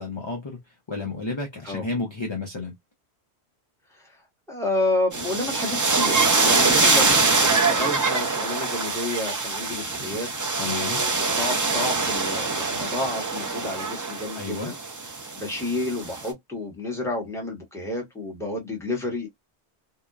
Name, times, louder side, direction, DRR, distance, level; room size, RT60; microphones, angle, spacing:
voice 1, 0.0-2.7 10.6-11.0 14.3-14.7, left 3 dB, 35° left, 0.5 m, -32 dB
voice 2, 4.5-10.3 10.5-14.8 15.4-19.3, left 2 dB, 5° left, 0.9 m, -30 dB
sound 1, 5.1-16.3, right 3 dB, 30° right, 0.4 m, -24 dB
2.8 x 2.1 x 2.2 m
omnidirectional pair, 1.1 m